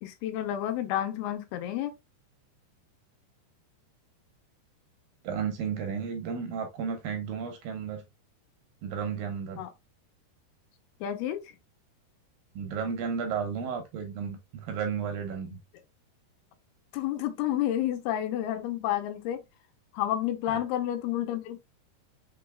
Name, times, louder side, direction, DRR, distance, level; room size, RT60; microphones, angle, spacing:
voice 1, 0.0-1.9 9.6-9.7 11.0-11.6 16.9-19.4 19.9-21.6, left 12 dB, 85° left, 2.7 m, -30 dB
voice 2, 5.2-8.0 8.8-9.6 12.6-15.6 20.5-20.6, right 6 dB, 75° right, 2.2 m, -33 dB
5.5 x 3.9 x 2.3 m
omnidirectional pair, 4.6 m